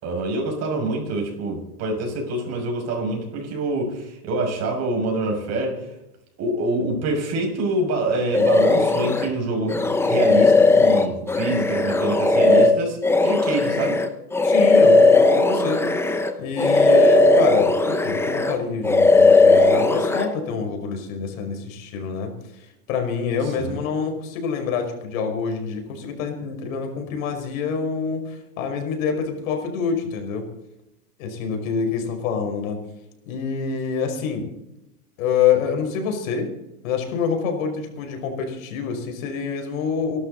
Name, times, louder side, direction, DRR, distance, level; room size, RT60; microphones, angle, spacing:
voice 1, 0.0-5.9 6.4-14.0 23.4-23.8, right 2 dB, 35° right, 1 dB, 6.5 m, -26 dB
sound 1, 8.3-9.3 9.7-16.3 16.6-18.6 18.8-20.3, left 3 dB, 5° left, 0.9 m, -17 dB
voice 2, 14.4-15.8 16.4-30.5 31.2-32.8 33.3-34.5 35.2-36.5 36.8-40.2, left 6 dB, 60° left, 4 dB, 5.2 m, -26 dB
26.0 x 12.5 x 4.1 m, 0.88 s
hypercardioid pair, 135°, 45 cm